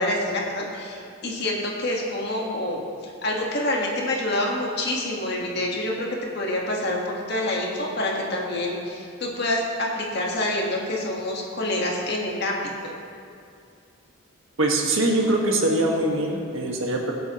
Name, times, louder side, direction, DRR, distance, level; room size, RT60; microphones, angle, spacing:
voice 1, 0.0-6.1 6.3-12.9, left 1 dB, 50° left, -2 dB, 1.7 m, -27 dB
voice 2, 14.6-17.1, right 1 dB, 70° right, 0 dB, 1.8 m, -23 dB
23.0 x 8.2 x 3.1 m, 2.5 s
head